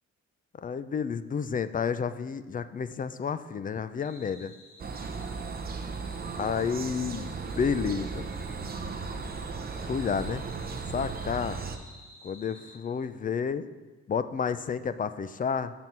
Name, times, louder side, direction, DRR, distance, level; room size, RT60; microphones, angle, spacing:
voice 1, 0.6-4.5 6.4-8.2 9.8-10.4 10.9-11.6 12.2-13.7 14.1-15.7, left 6 dB, 30° left, 13 dB, 0.4 m, -30 dB
sound 1, 4.0-12.8, left 1 dB, 60° left, 2.6 m, -52 dB
sound 2, 4.8-11.8, right 4 dB, 30° right, 0.6 m, -36 dB
6.1 x 5.9 x 5.3 m, 1.2 s
cardioid pair, 90°, 30 cm